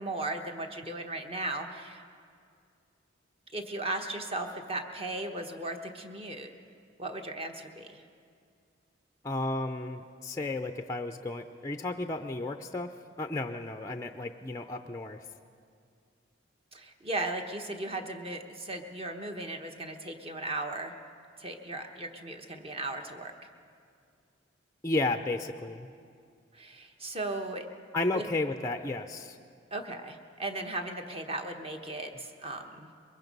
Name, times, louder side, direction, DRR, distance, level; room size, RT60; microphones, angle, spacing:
voice 1, 0.0-2.0 3.5-6.5 7.0-8.0 16.7-20.9 21.4-23.3 26.5-27.7 28.1-28.2 29.7-32.9, right 2 dB, 30° right, 4 dB, 1.2 m, -36 dB
voice 2, 9.2-12.9 13.2-15.2 24.8-25.9 27.9-29.4, left 2 dB, 15° left, 6 dB, 0.5 m, -33 dB
23.0 x 21.0 x 5.4 m, 2.3 s
head